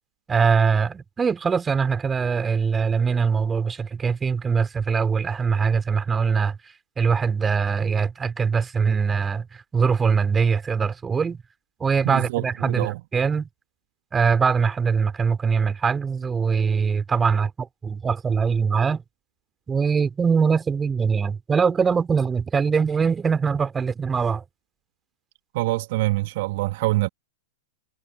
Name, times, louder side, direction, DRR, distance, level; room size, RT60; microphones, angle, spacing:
voice 1, 0.3-6.6 7.0-11.4 11.8-13.5 14.1-19.0 19.7-24.4, right 5 dB, 15° right, 4.0 m, -22 dB
voice 2, 12.0-13.0 25.5-27.1, right 19 dB, 50° right, 2.4 m, -25 dB
figure-of-eight pair, 100°, 0 cm